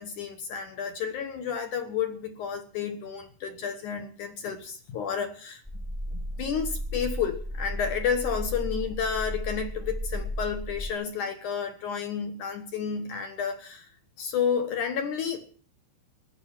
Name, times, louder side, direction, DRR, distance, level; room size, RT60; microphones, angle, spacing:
voice 1, 0.0-5.6 6.1-13.9 14.2-15.5, left 7 dB, 65° left, 2.0 m, -31 dB
sound 1, 5.6-10.9, equal, ahead, 1.2 m, -34 dB
16.0 x 11.0 x 7.3 m
omnidirectional pair, 5.1 m